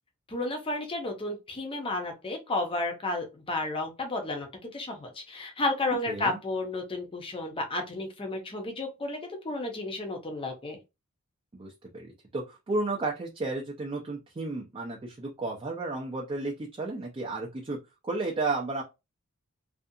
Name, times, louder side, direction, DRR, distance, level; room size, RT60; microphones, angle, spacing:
voice 1, 0.3-10.8, left 2 dB, 25° left, 0.6 m, -32 dB
voice 2, 6.1-6.4 11.5-17.8 18.0-18.8, right 3 dB, 25° right, 0.4 m, -33 dB
2.5 x 2.3 x 2.6 m
head